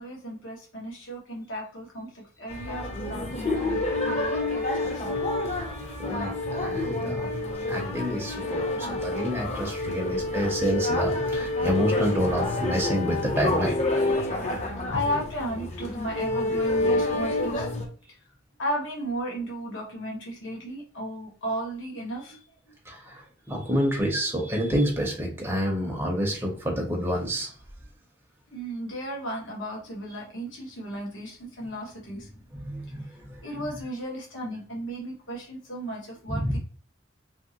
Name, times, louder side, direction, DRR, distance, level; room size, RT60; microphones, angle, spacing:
voice 1, 0.0-5.1 14.0-17.7 18.6-22.4 28.5-32.4 33.4-36.6, equal, 85° left, -3 dB, 1.1 m, -35 dB
sound 1, 2.5-17.9, left 2 dB, 35° left, 0.6 m, -28 dB
voice 2, 6.0-7.4 7.7-13.8 22.9-23.2 23.5-27.5 32.5-33.4 36.3-36.6, equal, 15° right, -1 dB, 0.6 m, -28 dB
2.8 x 2.7 x 2.7 m, 0.42 s
head